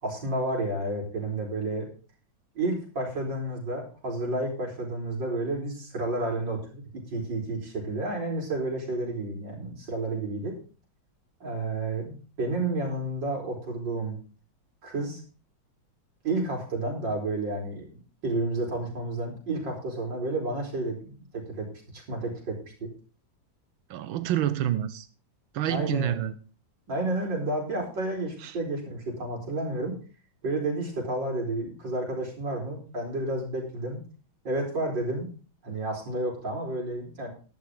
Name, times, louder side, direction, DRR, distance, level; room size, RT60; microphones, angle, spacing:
voice 1, 0.0-1.9 2.5-10.6 11.4-14.2 14.8-15.2 16.2-21.7 21.9-22.9 25.7-26.1 26.9-29.9 30.4-34.0 34.4-35.3 35.6-37.3, right 2 dB, 65° right, 0 dB, 5.1 m, -31 dB
voice 2, 23.9-25.1 25.5-26.4 28.4-28.6, right 11 dB, 90° right, 13 dB, 1.7 m, -28 dB
12.0 x 11.5 x 3.9 m, 0.37 s
omnidirectional pair, 2.1 m